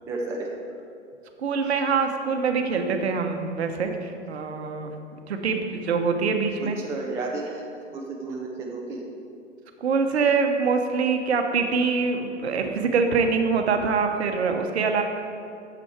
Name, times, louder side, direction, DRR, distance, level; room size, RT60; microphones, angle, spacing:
voice 1, 0.1-0.5 6.6-7.6 7.9-9.0, right 3 dB, 5° right, -1 dB, 0.5 m, -32 dB
voice 2, 1.4-4.9 5.3-6.8 9.8-15.0, right 5 dB, 60° right, 5 dB, 1.0 m, -24 dB
8.8 x 7.0 x 4.6 m, 2.5 s
figure-of-eight pair, 110°, 37 cm